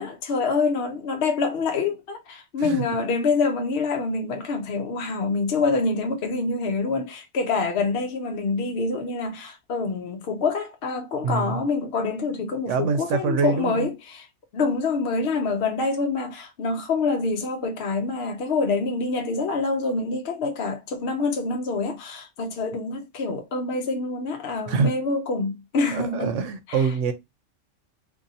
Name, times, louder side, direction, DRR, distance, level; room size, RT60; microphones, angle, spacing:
voice 1, 0.0-14.3 14.5-26.4 26.7-26.8, left 3 dB, 65° left, 0.8 m, -26 dB
voice 2, 11.2-11.6 12.7-13.9 24.7-24.9 25.9-27.1, right 5 dB, 85° right, 0.9 m, -25 dB
2.6 x 2.6 x 4.0 m
omnidirectional pair, 1.2 m